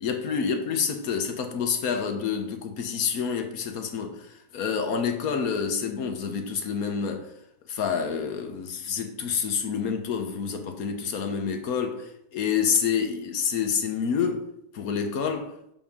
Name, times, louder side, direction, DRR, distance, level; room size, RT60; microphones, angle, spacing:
voice 1, 0.0-7.3 7.7-14.5 14.7-15.5, left 6 dB, 60° left, 5 dB, 1.1 m, -28 dB
7.3 x 6.1 x 3.6 m, 0.77 s
omnidirectional pair, 2.1 m